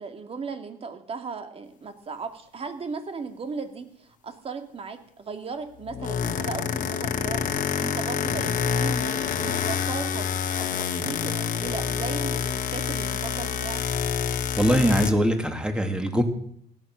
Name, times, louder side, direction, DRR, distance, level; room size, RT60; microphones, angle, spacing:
voice 1, 0.0-13.8, right 5 dB, 35° right, 7 dB, 2.1 m, -37 dB
sound 1, 5.8-15.1, left 7 dB, 50° left, 1.6 m, -27 dB
voice 2, 14.6-16.2, equal, 5° right, 5 dB, 2.5 m, -22 dB
17.0 x 12.5 x 6.3 m, 0.67 s
cardioid pair, 110°, 17 cm